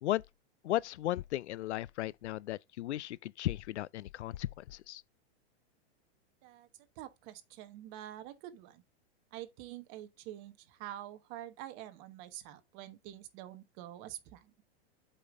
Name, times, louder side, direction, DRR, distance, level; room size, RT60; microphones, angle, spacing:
voice 1, 0.6-5.0, left 14 dB, 90° left, 0.5 m, -35 dB
voice 2, 7.0-8.8 9.3-14.5, right 13 dB, 35° right, 1.2 m, -47 dB
8.3 x 5.4 x 3.5 m
hypercardioid pair, 150°, 33 cm